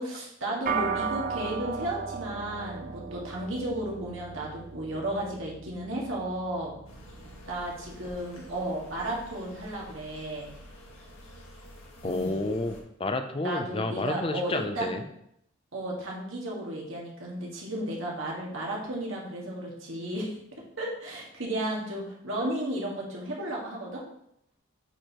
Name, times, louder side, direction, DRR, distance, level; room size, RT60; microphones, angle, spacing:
voice 1, 0.0-6.7 7.5-10.5 12.0-12.4 13.4-15.0 15.7-20.3 20.8-24.0, right 1 dB, 70° right, -3 dB, 1.9 m, -33 dB
sound 1, 0.7-10.2, right 6 dB, 40° right, 0.4 m, -37 dB
sound 2, 6.8-12.8, left 1 dB, 80° left, 1.7 m, -49 dB
voice 2, 12.0-15.1, left 2 dB, 25° left, 7 dB, 0.5 m, -30 dB
9.0 x 4.7 x 3.0 m, 0.75 s
head